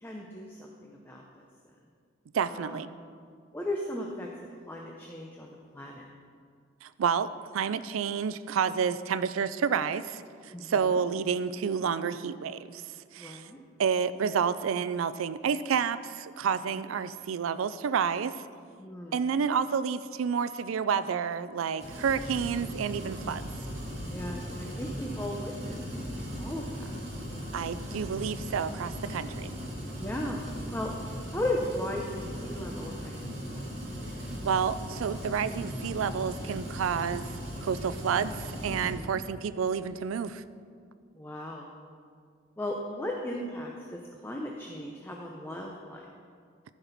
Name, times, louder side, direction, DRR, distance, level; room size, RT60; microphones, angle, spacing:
voice 1, 0.0-1.2 2.5-2.8 3.5-4.3 4.7-6.0 10.5-10.9 13.2-13.6 18.8-19.2 24.0-25.8 26.4-26.9 27.2-27.6 27.9-28.0 30.0-30.4 30.7-30.9 31.3-33.7 38.7-39.2 41.2-41.7 42.6-46.0, left 1 dB, 10° left, 0 dB, 0.6 m, -37 dB
voice 2, 2.3-2.9 6.8-7.3 7.5-12.8 13.1-13.4 13.8-18.4 19.1-23.5 27.5-29.6 34.4-37.3 37.6-40.4, right 6 dB, 90° right, 15 dB, 0.4 m, -29 dB
sound 1, 21.8-38.9, equal, 35° right, 2.6 m, -38 dB
14.5 x 5.9 x 4.0 m, 2.1 s
head